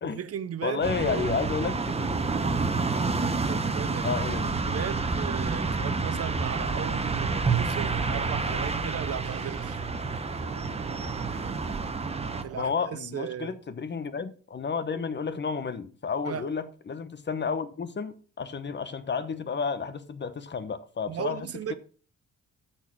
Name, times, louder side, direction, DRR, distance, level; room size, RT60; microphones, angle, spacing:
voice 1, 0.0-1.4 3.4-4.1 4.4-9.8 12.4-13.6 16.2-16.4 21.1-21.7, right 9 dB, 50° right, 0.9 m, -36 dB
voice 2, 0.6-2.1 4.0-4.6 12.5-21.7, left 5 dB, 35° left, 1.1 m, -31 dB
sound 1, 0.8-12.4, right 4 dB, 20° right, 1.1 m, -29 dB
sound 2, 4.7-12.7, right 12 dB, 75° right, 0.9 m, -43 dB
13.0 x 4.5 x 6.1 m
cardioid pair, 90°, 30 cm